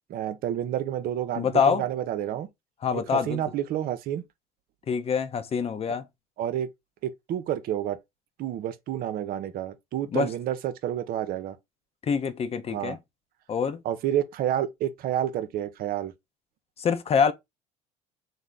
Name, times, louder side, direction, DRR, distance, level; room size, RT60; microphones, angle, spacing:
voice 1, 0.1-2.5 2.9-4.2 6.4-6.7 7.0-8.0 8.4-11.6 12.7-13.0 13.8-16.1, right 11 dB, 50° right, 0.5 m, -29 dB
voice 2, 1.4-1.8 2.8-3.4 4.9-6.0 10.1-10.3 12.0-13.0 13.5-13.8 16.8-17.3, left 6 dB, 30° left, 0.6 m, -25 dB
3.1 x 2.0 x 3.8 m
hypercardioid pair, 80°, 19 cm